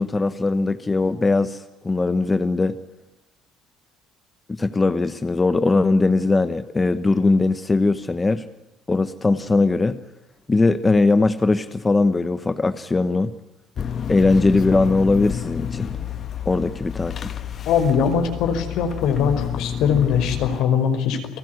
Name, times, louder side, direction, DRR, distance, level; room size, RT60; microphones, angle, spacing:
voice 1, 0.0-2.8 4.5-8.5 8.9-10.0 10.5-13.3 14.1-15.9 16.5-17.3, left 3 dB, 15° left, 11 dB, 1.0 m, -20 dB
sound 1, 13.8-20.6, left 8 dB, 40° left, 1.6 m, -30 dB
voice 2, 17.7-21.4, left 7 dB, 70° left, 8 dB, 5.2 m, -21 dB
30.0 x 19.5 x 9.6 m, 0.91 s
cardioid pair, 140°, 0 cm